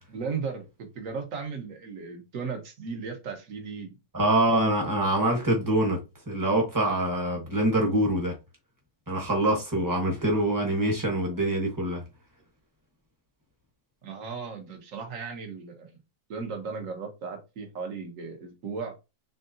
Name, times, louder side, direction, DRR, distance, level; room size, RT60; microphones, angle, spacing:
voice 1, 0.1-3.9 7.1-7.5 11.2-11.3 14.0-16.0 16.3-18.9, right 5 dB, 55° right, 1.3 m, -36 dB
voice 2, 4.1-6.0 6.3-8.3 9.1-12.0, right 1 dB, 15° right, 0.9 m, -25 dB
3.8 x 3.3 x 2.6 m
omnidirectional pair, 1.9 m